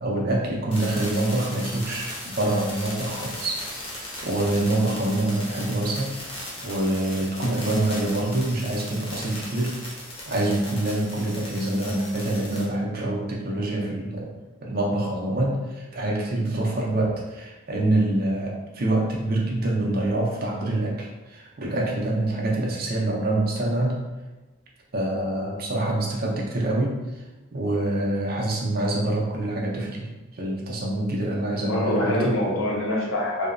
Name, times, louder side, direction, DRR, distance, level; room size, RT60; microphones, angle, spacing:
voice 1, 0.0-6.2 6.6-14.3 14.6-24.0 24.9-27.0 27.5-32.4, right 1 dB, 45° right, -2 dB, 0.4 m, -26 dB
sound 1, 0.7-12.7, left 1 dB, 30° left, 0.5 m, -37 dB
voice 2, 31.5-33.5, left 1 dB, 75° left, -2 dB, 0.6 m, -25 dB
2.8 x 2.0 x 2.4 m, 1.1 s
head